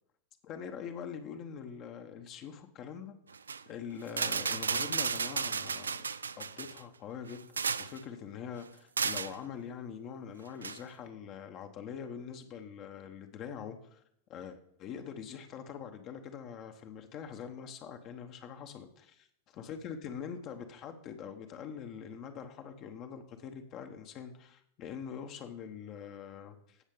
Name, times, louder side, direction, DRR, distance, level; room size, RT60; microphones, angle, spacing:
voice 1, 0.4-3.2 3.7-6.0 6.4-7.5 7.8-14.0 14.3-19.1 19.6-26.8, left 7 dB, 35° left, 6 dB, 1.0 m, -44 dB
sound 1, 3.3-3.6 4.1-6.8 7.3-8.0 9.0-9.4 10.6-10.8, right 5 dB, 75° right, 0.3 m, -33 dB
16.5 x 6.4 x 3.8 m, 0.71 s
figure-of-eight pair, 90°, 0 cm